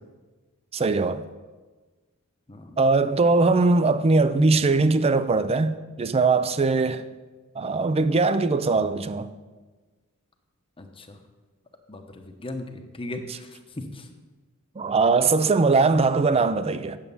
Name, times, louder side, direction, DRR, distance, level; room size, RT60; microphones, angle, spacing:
voice 1, 0.7-1.2 2.8-7.0 7.6-9.3 14.8-17.0, right 3 dB, 25° right, 0.4 m, -21 dB
voice 2, 10.8-11.2 11.9-13.5 13.8-14.1, left 1 dB, 25° left, 0.9 m, -37 dB
8.9 x 7.2 x 5.5 m
head